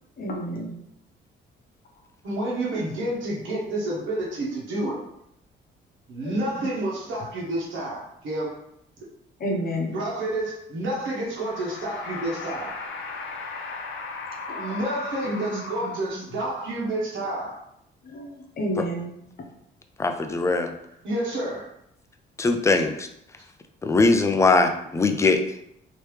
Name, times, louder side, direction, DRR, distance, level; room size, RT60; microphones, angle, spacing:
voice 1, 0.2-0.7 6.2-6.3 9.4-10.0 14.5-14.8 15.2-16.2 18.0-19.1, equal, 50° left, 1 dB, 0.9 m, -31 dB
voice 2, 2.2-5.0 6.1-8.5 9.9-12.7 14.6-17.6 20.8-21.7 22.7-22.8, right 1 dB, 75° right, -4 dB, 1.2 m, -29 dB
sound 1, 11.3-16.4, left 4 dB, 80° left, 0.6 m, -37 dB
voice 3, 20.0-20.7 22.4-23.1 23.8-25.4, left 3 dB, 15° left, 6 dB, 0.4 m, -21 dB
3.1 x 3.0 x 3.2 m, 0.77 s
cardioid pair, 90°, 20 cm